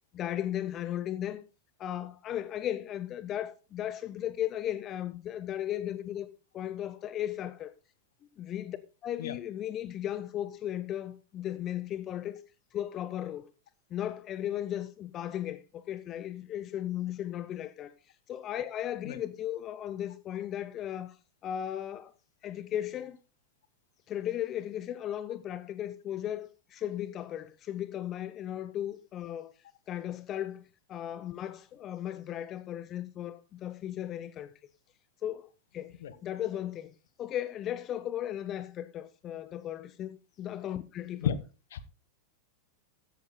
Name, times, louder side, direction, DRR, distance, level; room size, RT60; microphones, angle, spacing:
voice 1, 0.1-1.4 1.8-6.3 6.5-7.7 8.4-8.8 9.0-12.4 12.7-13.5 13.9-21.2 21.4-22.1 22.4-23.2 24.1-29.5 29.9-34.5 35.2-41.3, left 11 dB, 30° left, 0.8 m, -36 dB
voice 2, 9.2-9.3 19.0-19.2 36.0-36.1 41.2-41.4 41.7-41.8, left 9 dB, 60° left, 1.3 m, -31 dB
15.5 x 12.0 x 2.2 m
figure-of-eight pair, 90°, 0 cm